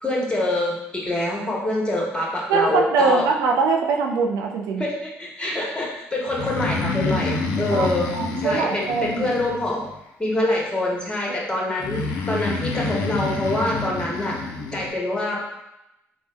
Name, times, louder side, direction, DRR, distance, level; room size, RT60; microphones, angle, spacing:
voice 1, 0.0-3.3 4.8-8.1 8.4-9.8 10.2-14.4 14.7-15.5, left 1 dB, 15° left, -3 dB, 1.1 m, -25 dB
voice 2, 2.5-4.8 7.7-9.3 11.3-11.4, right 4 dB, 85° right, 2 dB, 0.4 m, -22 dB
Breathing, 6.3-10.0 11.8-14.9, left 3 dB, 85° left, 0.4 m, -28 dB
3.3 x 2.1 x 3.3 m, 0.88 s
supercardioid pair, 60°, 5 cm